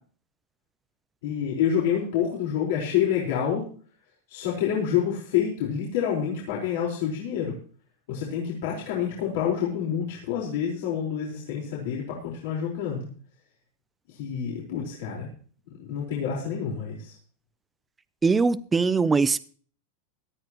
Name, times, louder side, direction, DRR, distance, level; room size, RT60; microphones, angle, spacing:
voice 1, 1.2-3.6 4.3-7.5 8.1-13.1 14.1-15.3 15.8-17.1, left 8 dB, 70° left, 4.6 m, -27 dB
voice 2, 18.2-19.4, right 4 dB, 10° right, 0.6 m, -21 dB
18.0 x 13.0 x 3.1 m
supercardioid pair, 150°, 0 cm